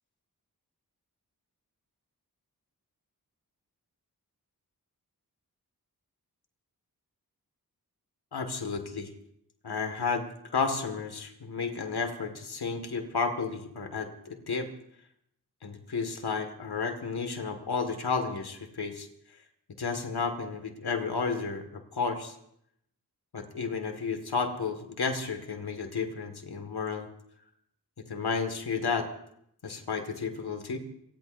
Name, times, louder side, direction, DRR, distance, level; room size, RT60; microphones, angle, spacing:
voice 1, 8.3-9.1 9.6-10.2 10.5-14.7 15.6-19.1 19.8-22.4 23.3-27.1 28.1-29.1 29.6-30.8, left 5 dB, 85° left, 6 dB, 2.0 m, -32 dB
28.0 x 17.5 x 2.7 m, 0.72 s
cardioid pair, 50°, 38 cm